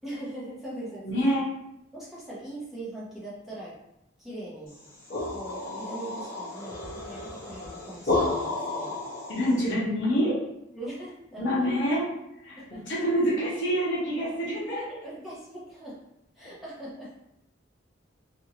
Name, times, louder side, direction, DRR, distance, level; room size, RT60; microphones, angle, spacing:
voice 1, 0.0-1.1 1.9-3.7 4.2-4.8 5.3-9.0 10.7-11.7 12.6-12.8 14.9-16.0 16.3-17.1, right 1 dB, ahead, -9 dB, 0.8 m, -40 dB
voice 2, 1.0-1.5 9.3-10.4 11.4-12.1 12.4-14.9 16.4-16.5, equal, 70° left, -5 dB, 1.0 m, -26 dB
sound 1, 4.7-9.7, left 2 dB, 45° left, 0.8 m, -32 dB
2.6 x 2.5 x 2.8 m, 0.82 s
head